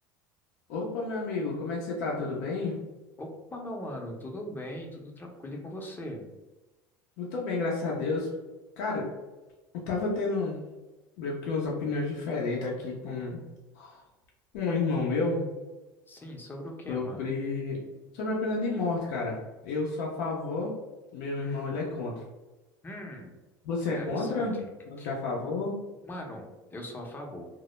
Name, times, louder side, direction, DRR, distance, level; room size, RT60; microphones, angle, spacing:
voice 1, 0.7-2.8 7.2-8.3 8.8-9.1 9.9-10.6 11.2-13.4 13.8-14.0 14.5-15.5 16.9-17.8 18.1-20.7 21.1-22.2 23.6-24.5 24.9-25.7, left 3 dB, 70° left, -3 dB, 0.5 m, -30 dB
voice 2, 3.2-6.2 16.1-17.3 21.4-21.8 22.8-23.4 24.0-24.5 25.0-25.1 26.0-27.5, left 1 dB, 20° left, 1 dB, 0.6 m, -40 dB
2.1 x 2.0 x 3.0 m, 1.1 s
hypercardioid pair, 80°, 11 cm